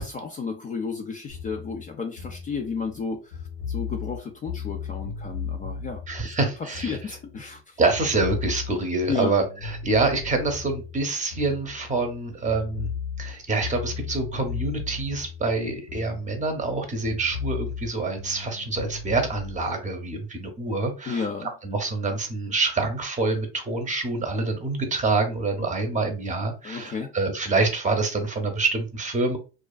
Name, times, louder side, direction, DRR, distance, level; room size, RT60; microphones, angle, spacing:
voice 1, 0.0-3.4 3.7-6.3 6.7-7.8 9.1-9.3 21.1-21.5 26.6-27.1, left 5 dB, 25° left, 3 dB, 0.4 m, -32 dB
sound 1, 1.3-7.6 7.9-12.2 12.5-16.7 17.0-19.6, left 6 dB, 85° left, 0.9 m, -36 dB
voice 2, 6.1-7.0 7.8-12.9 13.2-21.3 21.6-29.4, right 3 dB, 25° right, 5 dB, 0.7 m, -26 dB
2.4 x 2.3 x 2.2 m, 0.33 s
supercardioid pair, 85°, 31 cm